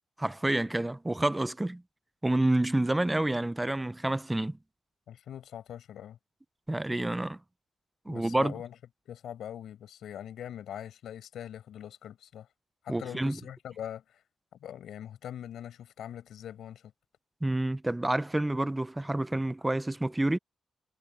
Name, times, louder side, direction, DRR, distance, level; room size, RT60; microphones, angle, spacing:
voice 1, 0.2-1.8 2.2-4.6 6.7-7.4 8.1-8.5 12.9-13.4 17.4-20.4, right 1 dB, 10° right, 0.5 m, -28 dB
voice 2, 5.1-6.2 8.1-8.8 9.1-12.5 12.8-14.2 14.5-16.9, left 10 dB, 70° left, 5.8 m, -42 dB
wide cardioid pair, 175°, 0 cm